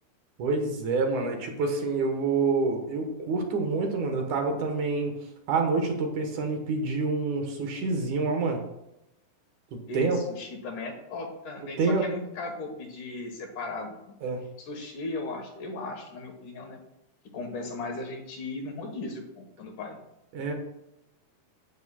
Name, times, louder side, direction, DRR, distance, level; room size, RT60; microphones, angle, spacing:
voice 1, 0.4-5.2 5.5-8.6 9.9-10.2 11.8-12.1 14.2-14.4 20.3-20.5, right 4 dB, 60° right, 3 dB, 2.3 m, -27 dB
voice 2, 9.9-14.1 14.6-16.8 17.3-20.0, left 3 dB, 65° left, 3 dB, 2.5 m, -37 dB
11.0 x 9.1 x 2.3 m, 0.86 s
omnidirectional pair, 4.5 m